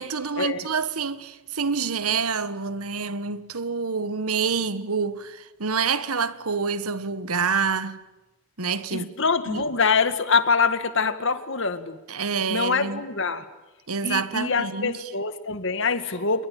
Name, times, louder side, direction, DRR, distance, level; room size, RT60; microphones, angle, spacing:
voice 1, 0.0-8.0 8.6-9.1 9.5-9.6 12.1-13.0 13.9-15.1, right 5 dB, 85° right, 1.5 m, -27 dB
voice 2, 8.9-12.0 12.5-13.5 14.0-16.5, left 4 dB, 55° left, 2.0 m, -24 dB
29.0 x 22.0 x 9.0 m
head